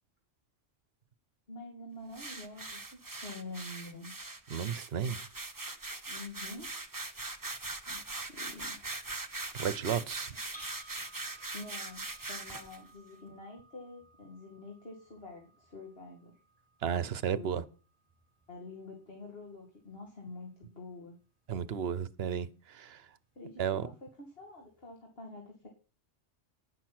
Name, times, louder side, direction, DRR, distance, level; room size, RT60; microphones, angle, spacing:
voice 1, 1.5-4.1 6.1-6.7 7.9-8.8 11.5-16.3 17.3-17.7 18.5-21.2 23.4-25.7, left 2 dB, 55° left, 2.6 m, -47 dB
sound 1, 2.1-12.8, right 2 dB, 20° right, 1.0 m, -41 dB
voice 2, 4.5-5.2 9.6-10.3 16.8-17.6 21.5-23.0 23.6-23.8, right 8 dB, 60° right, 1.0 m, -33 dB
sound 2, 10.5-18.6, right 2 dB, 5° left, 3.3 m, -58 dB
11.0 x 10.0 x 6.0 m
omnidirectional pair, 1.2 m